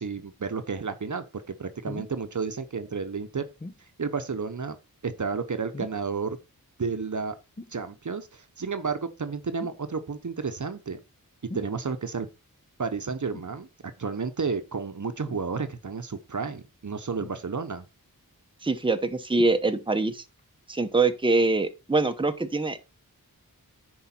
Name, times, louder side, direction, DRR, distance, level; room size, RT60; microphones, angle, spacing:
voice 1, 0.0-3.5 4.0-4.8 5.0-6.4 6.8-7.4 7.7-11.0 11.5-12.3 12.8-13.7 14.0-17.8, right 5 dB, 55° right, 0.9 m, -31 dB
sound 1, 1.8-2.2 3.6-3.8 5.7-6.1 7.6-7.8 9.6-9.8 11.5-11.7 13.3-13.6 15.3-15.5 17.2-17.8 19.3-19.6 20.4-20.5, left 2 dB, 20° left, 0.7 m, -41 dB
voice 2, 18.6-20.2 20.7-22.8, right 3 dB, 15° right, 0.9 m, -24 dB
10.0 x 4.7 x 4.3 m
wide cardioid pair, 80°, 36 cm